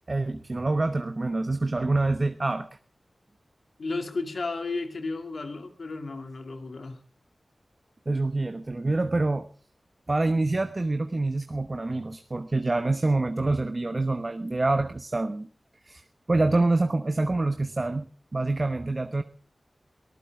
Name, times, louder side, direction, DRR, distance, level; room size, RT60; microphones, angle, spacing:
voice 1, 0.1-2.7 8.1-9.5 10.1-15.5 15.9-16.0 16.3-19.2, right 2 dB, 40° right, 8 dB, 1.0 m, -26 dB
voice 2, 3.8-7.0, left 3 dB, 75° left, 5 dB, 2.6 m, -33 dB
23.0 x 14.5 x 3.6 m, 0.38 s
cardioid pair, 55°, 0 cm